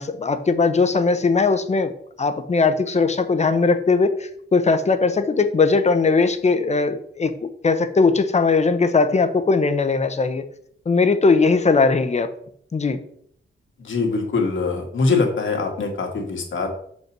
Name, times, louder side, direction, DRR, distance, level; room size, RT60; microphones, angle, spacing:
voice 1, 0.0-1.9 2.2-10.4 10.9-12.3 12.7-13.0, left 4 dB, 35° left, 10 dB, 0.8 m, -19 dB
voice 2, 13.8-16.7, left 4 dB, 75° left, 2 dB, 2.0 m, -23 dB
6.7 x 5.4 x 6.1 m, 0.65 s
wide cardioid pair, 140°, 20 cm